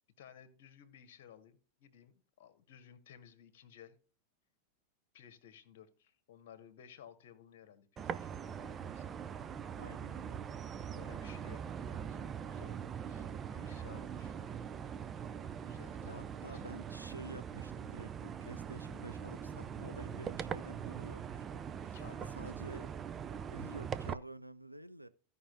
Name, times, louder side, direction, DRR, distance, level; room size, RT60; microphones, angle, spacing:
voice 1, 0.2-4.0 5.1-9.1 10.9-14.7 15.6-16.6 21.8-22.7, left 9 dB, 55° left, 1.4 m, -57 dB
sound 1, 8.0-24.1, right 8 dB, 25° right, 0.5 m, -42 dB
voice 2, 9.8-10.5 16.0-22.0 22.3-22.9 23.5-25.1, right 1 dB, 90° right, 0.5 m, -50 dB
sound 2, 11.7-21.8 22.6-22.7, right 5 dB, 10° left, 1.0 m, -57 dB
16.0 x 5.5 x 2.6 m
figure-of-eight pair, 90°, 0 cm